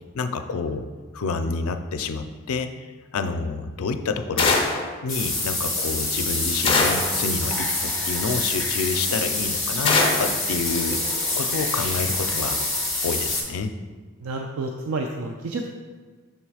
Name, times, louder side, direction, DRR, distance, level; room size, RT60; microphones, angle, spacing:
voice 1, 0.1-0.8 1.1-2.7 3.1-4.6 5.0-11.0 11.4-12.6 13.0-13.7, left 4 dB, 90° left, 7 dB, 0.4 m, -28 dB
sound 1, 4.4-4.9 6.6-7.2 9.8-10.4, left 3 dB, 25° left, 0.5 m, -21 dB
sound 2, 5.1-13.4, left 2 dB, ahead, 1.1 m, -26 dB
voice 2, 14.2-15.7, right 3 dB, 85° right, 2 dB, 0.4 m, -29 dB
6.6 x 3.1 x 4.8 m, 1.4 s
head